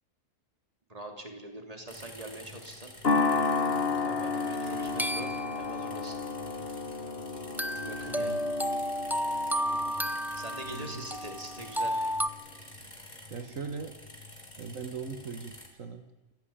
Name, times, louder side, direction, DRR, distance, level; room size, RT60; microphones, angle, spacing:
voice 1, 0.9-2.9 4.0-6.2 7.7-8.4 10.3-12.0 13.4-13.5, right 1 dB, 25° right, 3 dB, 3.3 m, -43 dB
sound 1, 1.9-15.7, left 1 dB, 30° left, 4.2 m, -49 dB
sound 2, 3.0-11.6, left 4 dB, 50° left, 1.8 m, -32 dB
sound 3, 5.0-5.6 7.6-12.3, equal, ahead, 0.5 m, -32 dB
voice 2, 10.6-11.1 13.3-14.0 14.6-16.0, right 5 dB, 75° right, 7 dB, 1.9 m, -39 dB
29.0 x 14.5 x 8.8 m, 1.1 s
omnidirectional pair, 1.4 m